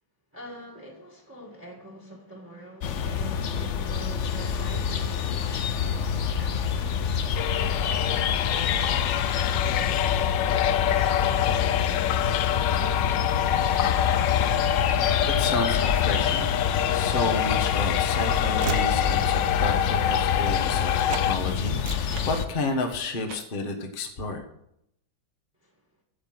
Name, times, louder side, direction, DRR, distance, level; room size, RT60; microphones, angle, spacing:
voice 1, 0.3-13.0 25.6-25.7, right 1 dB, 5° right, -2 dB, 1.8 m, -45 dB
sound 1, 2.8-22.4, left 7 dB, 90° left, 0.6 m, -27 dB
sound 2, 7.4-21.4, left 11 dB, 75° left, 1.2 m, -26 dB
voice 2, 15.4-16.5 16.9-24.4, left 2 dB, 30° left, 5 dB, 1.3 m, -31 dB
Train / Slam, 17.2-20.8 21.1-21.3 21.7-22.9 23.3-23.6, right 8 dB, 70° right, 1.2 m, -38 dB
8.7 x 7.9 x 7.6 m, 0.78 s
omnidirectional pair, 2.2 m